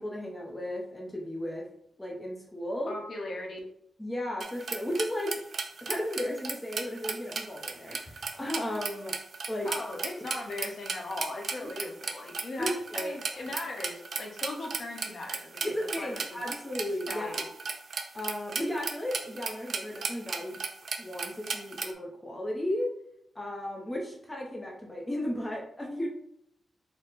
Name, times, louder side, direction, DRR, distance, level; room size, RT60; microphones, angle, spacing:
voice 1, 0.0-1.7 2.0-3.0 4.0-5.4 5.8-9.2 9.5-9.7 11.6-11.7 12.6-13.5 15.6-17.5 18.1-20.6 21.0-22.9 23.3-26.1, left 1 dB, 10° left, -1 dB, 0.5 m, -35 dB
voice 2, 2.9-3.6 9.6-15.6 16.0-16.2 17.1-17.4, left 2 dB, 45° left, 1 dB, 0.7 m, -38 dB
sound 1, 4.4-21.9, right 4 dB, 50° right, 0.4 m, -36 dB
4.4 x 2.0 x 3.8 m, 0.75 s
wide cardioid pair, 175°, 0 cm